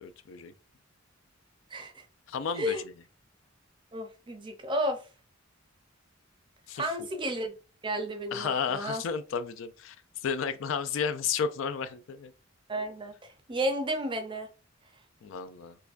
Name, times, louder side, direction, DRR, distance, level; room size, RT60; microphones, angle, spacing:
voice 1, 0.0-0.5 2.3-2.8 6.7-6.8 8.3-12.3 15.2-15.8, left 6 dB, 65° left, 0.3 m, -32 dB
voice 2, 1.7-2.0 2.6-2.8 3.9-5.0 6.8-7.5 7.8-9.0 12.7-14.5, equal, 25° right, 0.5 m, -32 dB
4.6 x 2.2 x 2.5 m
head